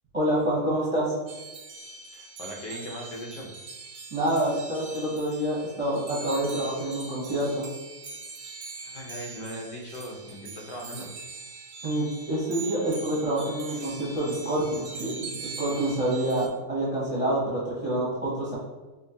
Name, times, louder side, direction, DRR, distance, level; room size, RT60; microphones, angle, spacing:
voice 1, 0.1-1.2 4.1-7.7 11.8-18.6, right 1 dB, 30° right, -7 dB, 0.6 m, -27 dB
sound 1, 1.3-16.5, right 4 dB, 65° right, 0.9 m, -42 dB
voice 2, 2.1-3.5 8.8-11.1 13.7-13.9, equal, 85° left, 0 dB, 1.5 m, -39 dB
5.2 x 2.2 x 2.7 m, 1.2 s
omnidirectional pair, 1.8 m